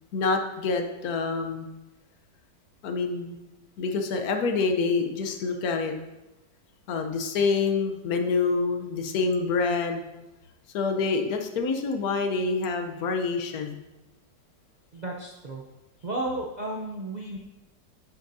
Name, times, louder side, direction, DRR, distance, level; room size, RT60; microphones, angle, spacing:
voice 1, 0.1-1.7 2.8-3.4 3.8-5.9 6.9-10.0 10.7-13.8, left 4 dB, 60° left, 5 dB, 1.2 m, -27 dB
voice 2, 14.9-15.6 16.0-17.4, right 2 dB, 60° right, -1 dB, 0.4 m, -33 dB
11.0 x 7.0 x 2.7 m, 1.0 s
omnidirectional pair, 1.9 m